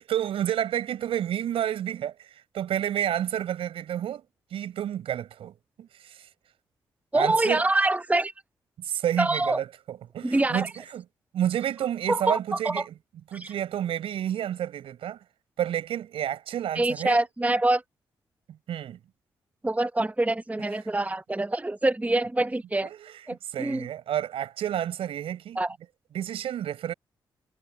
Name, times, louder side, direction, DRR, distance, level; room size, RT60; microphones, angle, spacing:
voice 1, 0.0-4.2 4.5-6.3 7.1-7.6 8.8-11.0 11.3-12.9 13.3-15.2 15.6-17.2 18.7-19.0 22.8-25.6 26.1-26.9, right 10 dB, 75° right, 5.0 m, -30 dB
voice 2, 7.1-8.3 9.2-9.6 10.2-10.7 12.1-12.8 13.3-13.5 16.7-17.8 19.6-22.9 23.3-23.8 25.6-25.8, right 2 dB, 15° right, 0.9 m, -25 dB
hypercardioid pair, 40°, 10 cm